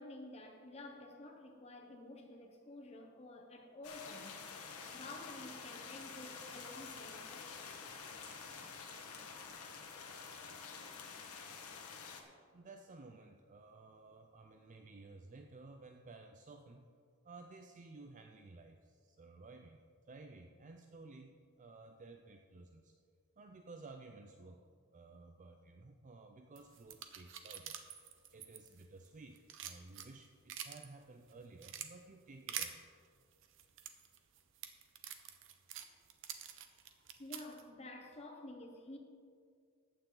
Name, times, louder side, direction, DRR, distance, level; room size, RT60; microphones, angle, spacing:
voice 1, 0.0-4.4 4.9-8.1 37.2-39.0, left 2 dB, 30° left, 1 dB, 0.9 m, -51 dB
sound 1, 3.8-12.2, left 5 dB, 85° left, 1.4 m, -49 dB
voice 2, 12.5-16.9 17.2-19.8 20.1-23.0 23.4-27.8 28.3-32.9, right 3 dB, 35° right, 5 dB, 0.5 m, -55 dB
sound 2, 26.6-29.1 29.4-30.9 31.3-31.9 32.5-32.7 33.4-37.6, right 9 dB, 60° right, 0.8 m, -46 dB
14.5 x 9.2 x 3.9 m, 2.2 s
head